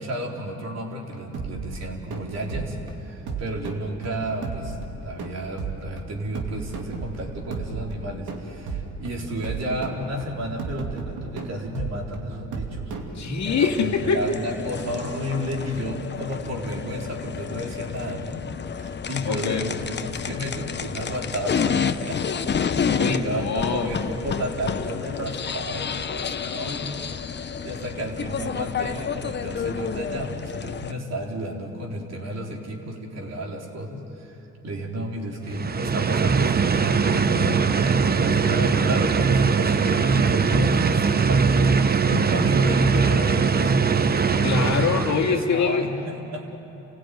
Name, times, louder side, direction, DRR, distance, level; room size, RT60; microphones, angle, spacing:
voice 1, 0.0-12.9 13.8-18.4 18.7-22.2 22.5-27.0 27.6-34.4 34.6-43.7 44.2-44.9 45.3-46.6, equal, 60° right, 0 dB, 4.0 m, -32 dB
sound 1, 1.3-13.7, right 4 dB, 80° right, 2.6 m, -34 dB
voice 2, 13.2-14.2 19.3-19.7 23.0-23.9 44.4-45.8, left 5 dB, 65° left, 3 dB, 2.2 m, -24 dB
sound 2, 13.4-30.9, left 6 dB, 35° left, 0.9 m, -30 dB
sound 3, 35.4-45.5, right 5 dB, 30° right, 0.9 m, -21 dB
29.0 x 16.5 x 9.4 m, 2.9 s
cardioid pair, 90°, 30 cm